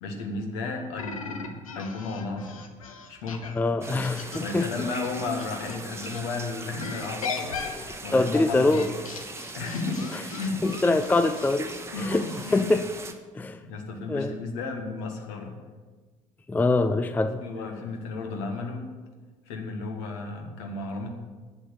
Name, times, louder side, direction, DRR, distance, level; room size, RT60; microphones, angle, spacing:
voice 1, 0.0-2.6 3.1-3.5 4.4-8.8 9.5-10.6 11.9-12.7 13.6-15.6 17.4-18.8 19.5-21.1, left 3 dB, 60° left, 3 dB, 1.9 m, -33 dB
sound 1, 1.0-6.2 6.8-12.6, left 5 dB, 75° left, 0.9 m, -39 dB
voice 2, 3.5-4.7 7.6-7.8 8.1-8.9 10.1-10.2 10.6-12.2 12.5-12.9 13.3-13.6 14.1-14.3 16.5-17.4, left 2 dB, 10° left, 11 dB, 0.5 m, -24 dB
sound 2, 3.8-13.1, right 3 dB, 15° right, 1.2 m, -40 dB
10.5 x 8.6 x 6.9 m, 1.3 s
figure-of-eight pair, 60°, 18 cm